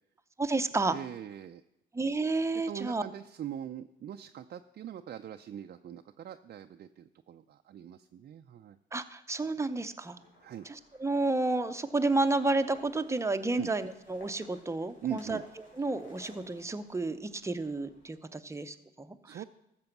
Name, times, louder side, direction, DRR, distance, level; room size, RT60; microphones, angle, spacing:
voice 1, 0.4-0.9 1.9-3.0 8.9-10.2 10.7-15.4 15.8-19.4, right 2 dB, 15° right, 9 dB, 0.8 m, -31 dB
voice 2, 0.9-1.6 2.5-8.8 10.4-10.7 13.5-13.7 15.0-15.4 19.2-19.4, right 10 dB, 50° right, 6 dB, 0.5 m, -41 dB
sound 1, 10.1-18.1, left 1 dB, 80° left, 4.5 m, -58 dB
14.0 x 6.9 x 6.0 m, 0.83 s
cardioid pair, 90°, 20 cm